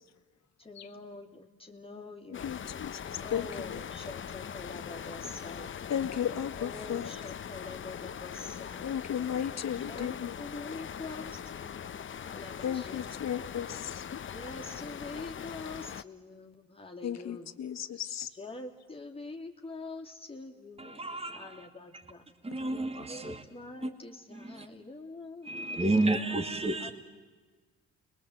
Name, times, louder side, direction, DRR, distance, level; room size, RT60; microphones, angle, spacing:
voice 1, 0.6-2.6 3.2-5.8 6.6-9.0 9.8-12.0 12.2-13.0 13.4-13.5 14.3-17.5 18.3-22.3 23.1-25.7 26.8-26.9, left 3 dB, 20° left, 0 dB, 2.7 m, -45 dB
sound 1, 2.3-16.0, left 8 dB, 40° left, 0.8 m, -41 dB
voice 2, 2.4-2.9 3.3-3.7 5.9-7.1 8.8-10.3 12.6-14.0 17.0-18.3, left 9 dB, 60° left, 10 dB, 1.7 m, -34 dB
voice 3, 20.8-21.5 22.4-23.4 23.8-23.9 24.3-24.7 25.4-26.9, right 2 dB, 20° right, 5 dB, 2.2 m, -31 dB
30.0 x 22.0 x 7.9 m, 1.4 s
cardioid pair, 90°, 30 cm